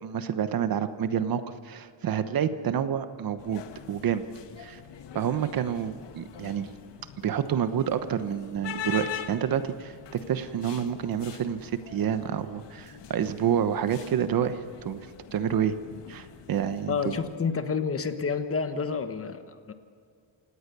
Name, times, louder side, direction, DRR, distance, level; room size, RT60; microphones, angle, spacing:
voice 1, 0.0-3.6 3.9-4.2 4.6-4.8 5.1-6.7 7.2-15.0 15.3-15.8 16.1-17.1, right 8 dB, 50° right, 11 dB, 1.1 m, -28 dB
sound 1, 3.4-17.4, left 9 dB, 65° left, 1.7 m, -43 dB
voice 2, 16.9-19.7, left 5 dB, 30° left, 8 dB, 1.3 m, -29 dB
28.5 x 18.0 x 6.9 m, 2.2 s
cardioid pair, 145°, 46 cm